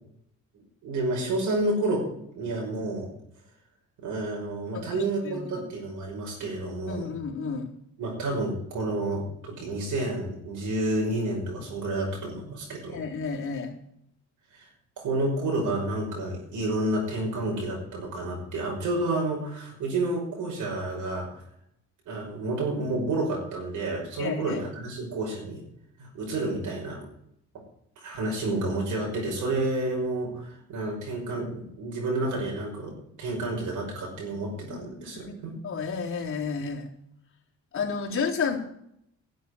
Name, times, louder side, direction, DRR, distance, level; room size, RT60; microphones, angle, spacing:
voice 1, 0.8-2.0 2.3-3.1 4.0-7.1 8.0-13.0 14.5-14.7 15.0-21.4 22.1-25.6 26.0-27.0 28.0-35.5, right 2 dB, 80° right, -2 dB, 5.7 m, -30 dB
voice 2, 4.7-5.6 6.9-7.7 12.9-13.8 24.2-24.6 34.7-36.9 37.7-38.6, left 5 dB, 45° left, -1 dB, 3.6 m, -32 dB
12.0 x 7.9 x 9.7 m, 0.74 s
cardioid pair, 90°, 30 cm